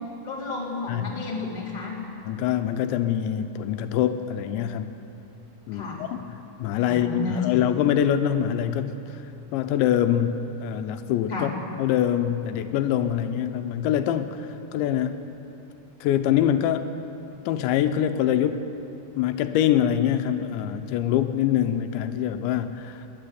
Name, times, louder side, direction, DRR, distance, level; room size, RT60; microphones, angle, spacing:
voice 1, 0.2-2.0 5.7-6.1 6.8-7.6 11.3-11.5, left 3 dB, 10° left, -4 dB, 2.8 m, -31 dB
voice 2, 2.3-4.9 5.7-9.0 9.5-11.5 11.8-15.2 16.0-16.9 17.5-18.7 19.2-23.0, left 10 dB, 85° left, 8 dB, 3.1 m, -24 dB
26.0 x 11.0 x 9.5 m, 2.9 s
omnidirectional pair, 5.2 m